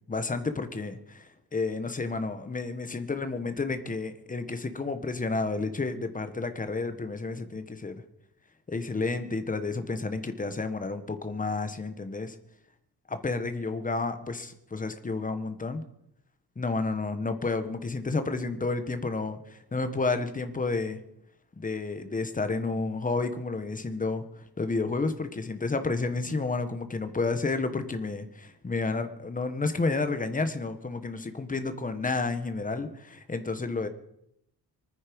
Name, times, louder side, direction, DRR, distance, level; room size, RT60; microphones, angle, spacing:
voice 1, 0.1-8.0 8.7-12.4 13.2-15.8 16.5-21.0 21.6-33.9, left 3 dB, 20° left, 9 dB, 1.4 m, -31 dB
24.5 x 9.8 x 5.3 m, 0.76 s
wide cardioid pair, 150°, 39 cm